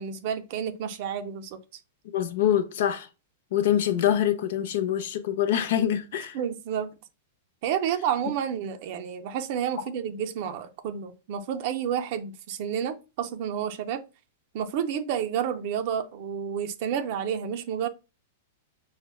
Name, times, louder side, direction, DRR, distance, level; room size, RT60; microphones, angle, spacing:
voice 1, 0.0-1.6 6.3-6.9 7.6-14.0 14.5-17.9, right 8 dB, 50° right, 0.4 m, -30 dB
voice 2, 2.1-3.1 3.5-6.4, left 10 dB, 65° left, 0.5 m, -25 dB
5.6 x 2.1 x 2.3 m
supercardioid pair, 150°, 0 cm